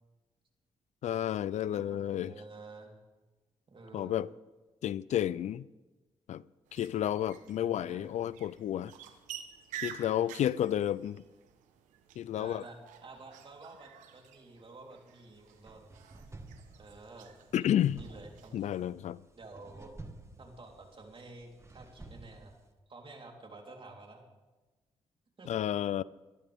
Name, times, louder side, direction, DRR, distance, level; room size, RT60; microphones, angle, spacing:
voice 1, 1.0-2.3 3.9-4.3 4.8-5.7 6.3-6.4 6.7-8.9 9.7-11.2 12.2-12.6 17.5-18.0 18.5-19.2 25.5-26.0, left 11 dB, 70° left, 0.4 m, -31 dB
voice 2, 1.6-3.0 3.7-4.2 7.6-8.3 12.3-12.8 13.0-15.9 16.8-17.4 18.0-18.7 19.4-19.9 20.4-22.6 22.9-24.2 25.4-25.6, right 3 dB, 45° right, 3.6 m, -50 dB
sound 1, 6.6-19.0, right 10 dB, 90° right, 1.1 m, -50 dB
sound 2, 15.3-22.7, right 2 dB, 20° right, 1.8 m, -52 dB
25.0 x 12.5 x 3.6 m
supercardioid pair, 50°, 13 cm